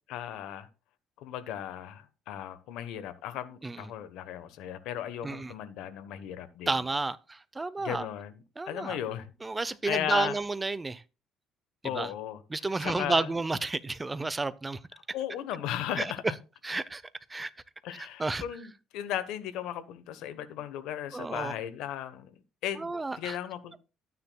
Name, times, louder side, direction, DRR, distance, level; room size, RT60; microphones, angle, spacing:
voice 1, 0.1-0.7 1.2-6.8 7.8-8.4 8.7-9.3 9.6-10.3 11.8-12.4 12.8-13.3 15.1-16.2 17.8-22.3 22.6-23.8, left 11 dB, 80° left, 1.0 m, -36 dB
voice 2, 6.7-8.1 8.6-9.0 9.4-11.0 11.9-12.1 12.5-14.8 16.0-16.1 16.6-17.0 17.3-17.5 17.9-18.4 21.1-21.5 22.8-23.4, right 3 dB, 15° right, 0.6 m, -31 dB
12.0 x 9.5 x 2.3 m
cardioid pair, 125°, 0 cm